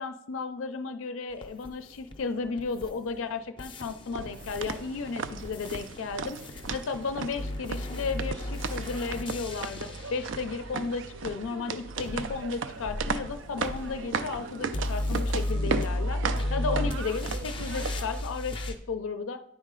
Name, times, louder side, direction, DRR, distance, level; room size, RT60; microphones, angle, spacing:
voice 1, 0.0-19.4, left 4 dB, 85° left, 9 dB, 0.4 m, -34 dB
sound 1, 1.4-3.3 3.6-11.3 12.0-18.7, left 1 dB, 25° left, 0.5 m, -34 dB
sound 2, 4.1-18.2, right 5 dB, 75° right, 0.4 m, -36 dB
9.7 x 4.1 x 3.7 m, 0.74 s
head